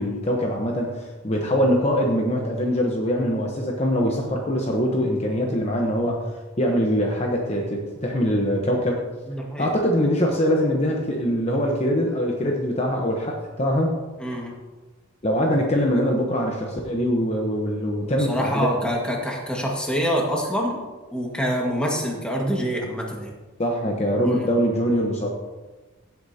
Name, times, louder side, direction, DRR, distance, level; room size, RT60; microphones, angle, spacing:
voice 1, 0.0-6.3 6.6-9.0 9.6-14.0 15.2-18.7 23.6-25.3, equal, 30° left, 0 dB, 1.0 m, -23 dB
voice 2, 9.3-9.7 14.2-14.5 18.2-20.8 21.1-23.3 24.2-24.5, equal, 5° left, -2 dB, 1.7 m, -26 dB
16.5 x 8.3 x 2.8 m, 1.2 s
head